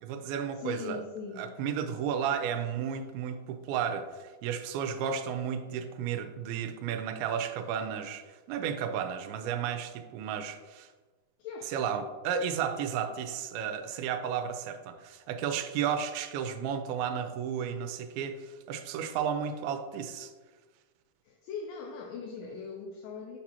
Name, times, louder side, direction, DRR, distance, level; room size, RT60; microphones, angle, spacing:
voice 1, 0.0-1.0 1.4-10.9 11.7-20.3, right 8 dB, 90° right, 7 dB, 2.4 m, -33 dB
voice 2, 0.6-1.5 11.4-11.9 21.3-23.4, left 5 dB, 80° left, 2 dB, 2.2 m, -40 dB
6.6 x 5.9 x 2.9 m, 1.3 s
omnidirectional pair, 4.2 m